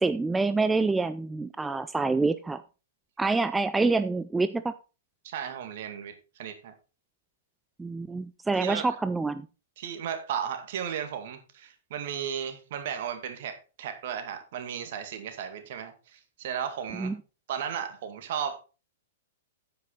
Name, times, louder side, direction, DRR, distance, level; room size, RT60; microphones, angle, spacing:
voice 1, 0.0-2.6 3.2-4.7 7.8-9.5 17.0-17.2, right 3 dB, 10° right, 12 dB, 0.4 m, -26 dB
voice 2, 5.2-6.7 8.6-8.9 9.8-17.1 17.5-18.6, right 8 dB, 55° right, 7 dB, 2.1 m, -35 dB
9.3 x 8.3 x 4.0 m, 0.32 s
figure-of-eight pair, 110°, 0 cm